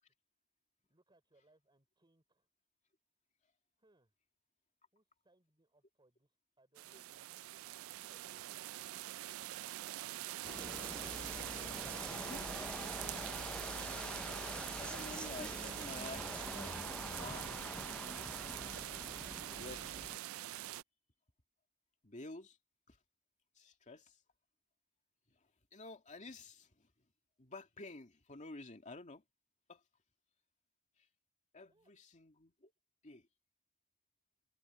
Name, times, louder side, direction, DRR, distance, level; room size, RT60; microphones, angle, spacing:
voice 1, 0.9-2.5 3.8-4.1 4.9-7.3 31.7-31.9, right 2 dB, 25° right, 3.5 m, -73 dB
sound 1, 6.8-20.8, right 15 dB, 80° right, 0.3 m, -44 dB
sound 2, 10.4-20.2, left 1 dB, 5° left, 0.4 m, -46 dB
voice 2, 12.1-12.5 14.8-16.7 17.2-17.5 19.5-20.1 22.0-22.6 22.9-23.0 23.6-24.1 25.7-26.9 27.4-29.2 29.7-29.8 31.5-32.7 33.0-33.3, left 3 dB, 35° left, 2.3 m, -51 dB
head